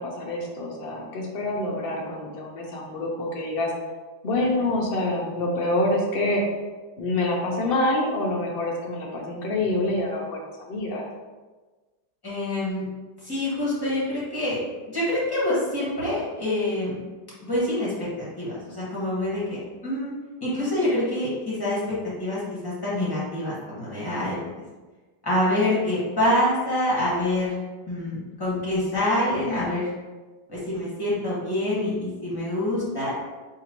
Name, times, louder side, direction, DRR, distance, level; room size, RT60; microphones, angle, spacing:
voice 1, 0.0-3.7 4.2-6.4 7.0-10.4 10.6-11.0, left 1 dB, 65° left, -1 dB, 0.6 m, -26 dB
voice 2, 12.2-12.8 13.2-14.6 14.9-17.0 17.4-19.4 19.8-20.1 20.4-21.8 22.2-24.4 25.2-27.5 27.9-29.9 30.5-33.1, left 1 dB, 15° left, -8 dB, 1.2 m, -26 dB
3.9 x 2.8 x 2.9 m, 1.3 s
omnidirectional pair, 1.9 m